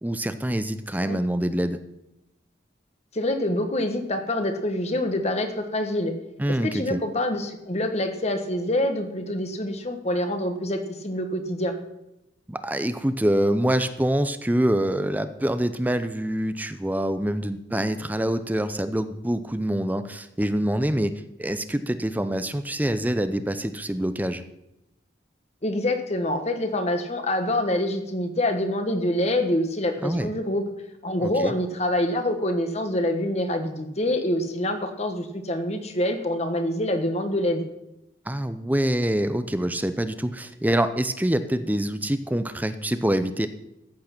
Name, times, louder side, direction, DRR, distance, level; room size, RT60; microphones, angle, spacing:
voice 1, 0.0-1.8 6.4-7.0 12.5-21.1 21.4-24.4 30.0-30.3 31.2-31.5 38.3-43.5, right 1 dB, 10° right, 11 dB, 0.5 m, -25 dB
voice 2, 3.1-6.1 6.5-11.8 25.6-30.6 31.0-37.7, left 1 dB, 35° left, 7 dB, 1.3 m, -26 dB
13.5 x 8.3 x 6.0 m, 0.89 s
head